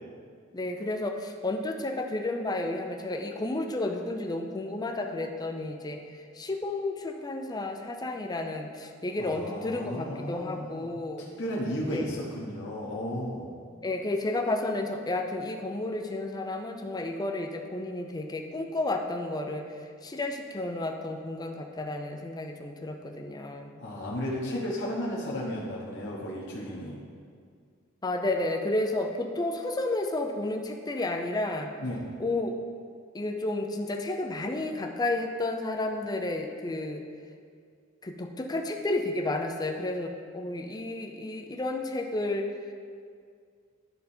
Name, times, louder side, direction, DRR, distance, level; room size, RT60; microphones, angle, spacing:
voice 1, 0.5-11.3 11.9-12.1 13.8-19.7 20.0-23.8 28.0-31.7 32.2-32.5 33.1-37.0 38.0-42.5, left 2 dB, 20° left, 3 dB, 0.5 m, -31 dB
voice 2, 9.2-11.0 11.4-13.5 23.8-27.0 31.8-32.0, equal, 60° left, -5 dB, 1.2 m, -34 dB
10.5 x 4.0 x 4.3 m, 2.1 s
head